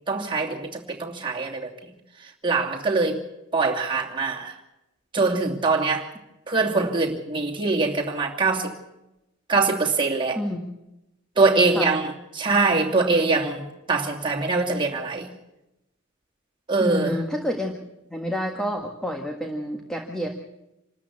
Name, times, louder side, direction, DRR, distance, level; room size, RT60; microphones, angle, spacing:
voice 1, 0.1-1.9 2.2-3.2 3.5-4.6 5.1-6.1 6.5-8.7 9.5-10.4 11.4-15.3 16.7-17.2, right 3 dB, 25° right, -1 dB, 2.7 m, -23 dB
voice 2, 16.8-17.7 18.1-20.3, equal, 5° left, 2 dB, 1.6 m, -28 dB
27.0 x 13.5 x 8.5 m, 0.92 s
head